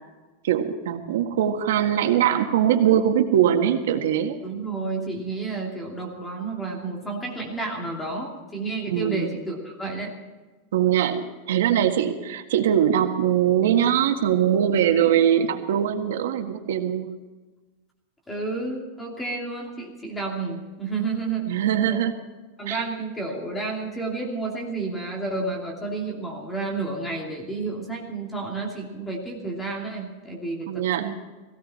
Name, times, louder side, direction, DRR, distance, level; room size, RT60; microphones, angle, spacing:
voice 1, 0.4-4.4 8.9-9.4 10.7-17.1 21.5-22.2 22.7-22.8 30.7-31.1, right 10 dB, 90° right, 5 dB, 1.7 m, -22 dB
voice 2, 4.4-10.1 18.3-21.5 21.9-22.0 22.6-31.1, right 3 dB, 10° left, 0 dB, 2.9 m, -31 dB
18.0 x 17.0 x 4.4 m, 1.2 s
supercardioid pair, 180°, 0 cm